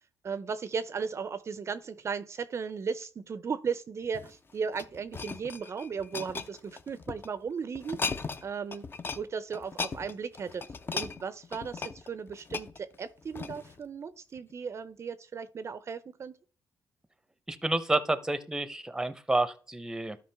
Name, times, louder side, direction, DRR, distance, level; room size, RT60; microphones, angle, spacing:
voice 1, 0.2-8.9 9.2-16.4, right 6 dB, 45° right, 0.5 m, -36 dB
sound 1, 4.0-7.3 7.8-8.5 8.7-9.2 9.5-13.8 14.4-14.5, left 4 dB, 35° left, 0.7 m, -37 dB
voice 2, 17.5-20.2, right 2 dB, 10° right, 0.7 m, -29 dB
12.5 x 5.1 x 3.4 m
cardioid pair, 90°, 7 cm